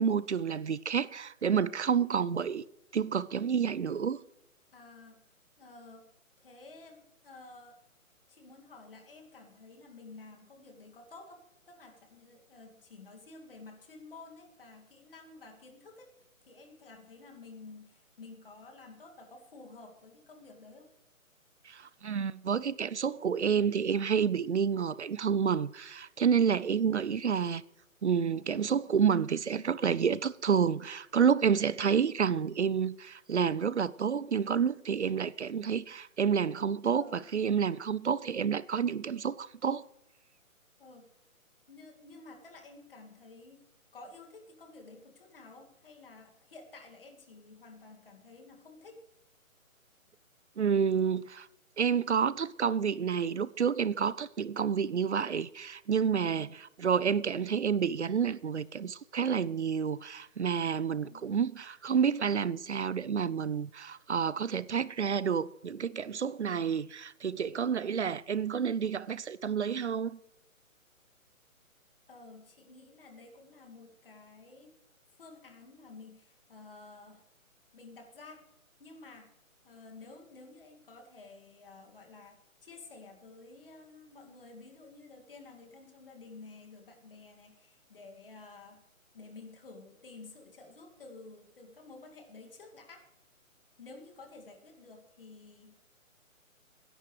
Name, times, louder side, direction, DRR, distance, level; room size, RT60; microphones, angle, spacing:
voice 1, 0.0-2.6 2.9-4.2 21.7-27.6 28.0-39.8 50.6-51.5 51.8-70.2, right 7 dB, 55° right, 0.5 m, -29 dB
voice 2, 4.7-5.2 5.6-6.1 6.4-7.8 8.3-16.1 16.4-20.9 36.8-37.3 40.8-41.1 41.7-43.6 43.9-49.0 56.2-56.6 60.9-61.3 72.1-74.7 75.1-77.3 77.7-78.5 78.8-79.3 79.6-88.8 89.1-93.1 93.8-95.8, left 3 dB, 40° left, 2.4 m, -52 dB
20.0 x 11.0 x 3.3 m
hypercardioid pair, 175°, 42 cm